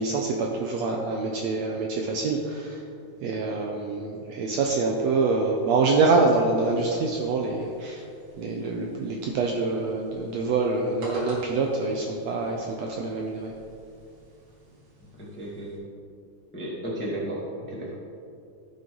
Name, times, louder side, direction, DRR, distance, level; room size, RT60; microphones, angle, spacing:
voice 1, 0.0-2.8 3.2-8.0 8.4-13.5, right 3 dB, 75° right, 1 dB, 1.6 m, -25 dB
sound 1, 6.6-15.8, right 1 dB, 60° right, 3.5 m, -44 dB
voice 2, 15.2-15.9 16.5-18.0, right 1 dB, 5° left, -6 dB, 0.9 m, -34 dB
16.0 x 5.6 x 3.8 m, 2.6 s
omnidirectional pair, 3.7 m